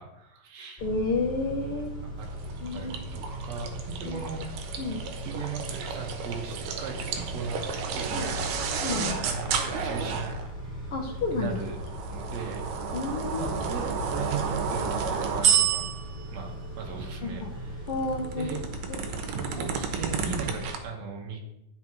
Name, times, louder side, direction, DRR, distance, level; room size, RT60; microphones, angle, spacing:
voice 1, 0.0-0.8 2.2-2.3 2.7-4.5 5.2-7.6 7.9-8.4 8.9-10.9 11.3-11.8 12.1-12.6 13.3-15.9 16.3-17.9 18.4-18.7 19.3-21.4, right 5 dB, 60° right, 1 dB, 2.5 m, -37 dB
voice 2, 0.8-1.9 2.6-3.0 4.0-4.2 4.8-5.0 8.1-8.3 8.8-9.2 10.9-11.5 12.9-13.5 17.2-17.5 17.9-18.6 18.9-19.0, left 3 dB, 85° left, 0 dB, 1.2 m, -30 dB
Car / Idling / Accelerating revving vroom, 0.8-20.7, right 1 dB, 20° left, 2.8 m, -39 dB
sound 1, 2.3-10.5 11.4-16.2 17.9-20.8, right 6 dB, 85° right, 2.5 m, -31 dB
11.5 x 6.1 x 3.1 m, 0.83 s
omnidirectional pair, 3.7 m